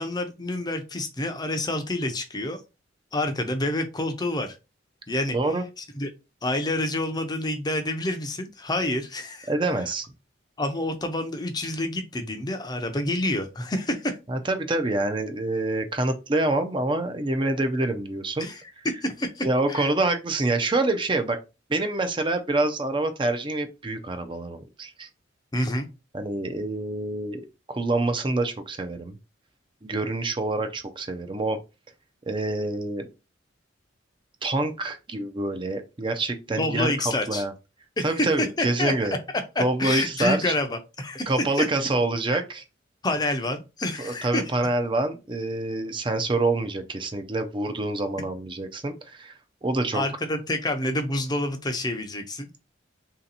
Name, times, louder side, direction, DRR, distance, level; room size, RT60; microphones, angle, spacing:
voice 1, 0.0-2.6 3.1-4.6 5.1-5.4 5.8-6.1 6.4-9.5 10.6-14.2 18.4-19.9 25.5-25.9 36.6-37.4 38.0-38.9 39.6-41.3 41.6-41.7 42.3-42.4 43.0-44.4 49.9-52.6, left 1 dB, 20° left, 6 dB, 0.5 m, -28 dB
voice 2, 5.3-5.6 9.5-10.1 14.3-18.5 19.4-21.4 21.7-25.1 26.1-27.4 27.7-29.2 29.8-31.6 32.3-33.1 34.4-36.9 37.3-37.5 38.0-39.2 39.6-40.5 41.3-42.6 44.0-50.0, right 2 dB, 25° right, 8 dB, 0.5 m, -26 dB
3.3 x 2.8 x 3.9 m, 0.27 s
head